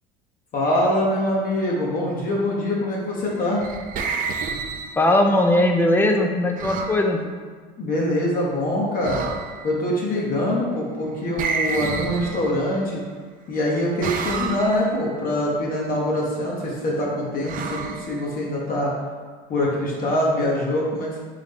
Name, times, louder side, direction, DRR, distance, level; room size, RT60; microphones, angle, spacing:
voice 1, 0.5-3.6 7.8-9.2 9.6-13.0 13.5-18.9 19.5-21.2, left 1 dB, 45° left, -3 dB, 1.0 m, -24 dB
sound 1, 3.3-5.3 6.6-7.1 9.0-9.8 11.4-12.8 14.0-15.0 17.4-18.6, right 5 dB, 40° right, 0.4 m, -30 dB
voice 2, 5.0-7.2, left 1 dB, 10° left, 3 dB, 0.5 m, -19 dB
3.8 x 3.1 x 3.5 m, 1.5 s
supercardioid pair, 90°, 21 cm